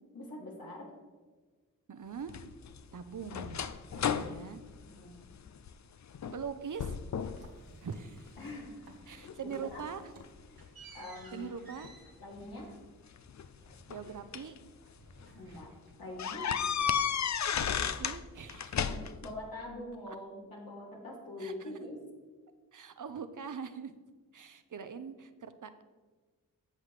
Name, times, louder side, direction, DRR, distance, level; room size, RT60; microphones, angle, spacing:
voice 1, 0.1-0.9 4.8-5.1 8.4-9.0 9.4-9.8 10.5-10.6 10.9-11.5 12.2-12.8 15.3-15.7 16.0-16.5 18.7-22.0, left 1 dB, 90° left, -4 dB, 2.8 m, -44 dB
voice 2, 1.9-2.4 2.9-3.6 4.0-4.6 6.3-7.0 7.8-8.3 9.1-10.0 11.3-11.9 13.9-14.6 17.6-18.8 21.4-21.7 22.7-23.9 24.3-25.8, right 6 dB, 60° right, 10 dB, 0.8 m, -42 dB
sound 1, 2.3-5.7 6.1-6.5 6.8-7.5 7.9-8.6 9.2-10.7 11.8-11.9 13.2-14.6 15.1-15.2 15.5-15.6 16.2-18.2 18.5-19.3, left 7 dB, 55° left, 0.5 m, -34 dB
sound 2, 7.3-8.6 8.8-9.3 9.6-14.6 14.8-16.1, right 3 dB, 80° right, 1.5 m, -56 dB
16.0 x 5.7 x 3.3 m, 1.4 s
cardioid pair, 50°, 35 cm